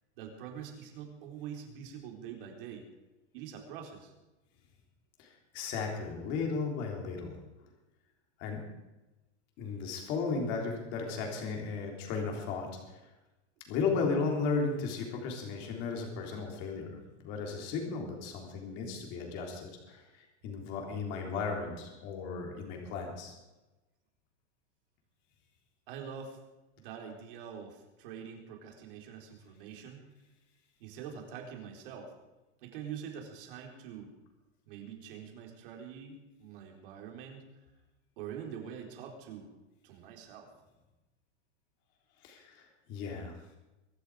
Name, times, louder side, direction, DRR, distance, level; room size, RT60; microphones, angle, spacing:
voice 1, 0.2-2.9 3.3-4.1 25.9-26.4 26.8-30.1 30.8-32.1 32.6-34.1 34.7-37.5 38.2-39.5 39.8-40.5, right 8 dB, 50° right, 2 dB, 4.1 m, -45 dB
voice 2, 5.2-7.4 8.4-8.6 9.6-13.0 13.7-16.9 17.2-23.3 42.2-43.3, left 4 dB, 30° left, 2 dB, 3.6 m, -35 dB
23.5 x 12.0 x 5.0 m, 1.1 s
supercardioid pair, 175°, 35 cm